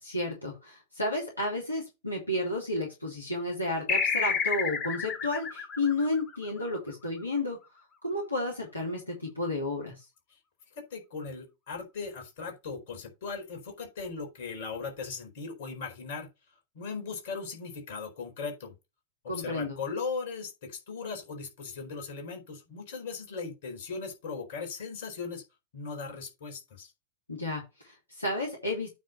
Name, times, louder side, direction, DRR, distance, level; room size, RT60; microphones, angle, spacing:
voice 1, 0.0-7.6 8.0-10.1 19.3-19.8 27.3-28.9, left 2 dB, 85° left, 2.5 m, -32 dB
sound 1, 3.9-6.9, left 6 dB, 30° left, 2.1 m, -30 dB
voice 2, 10.8-16.3 16.7-18.7 19.2-25.4 25.7-26.9, left 4 dB, 55° left, 4.4 m, -38 dB
9.2 x 3.4 x 6.9 m
figure-of-eight pair, 90°, 0 cm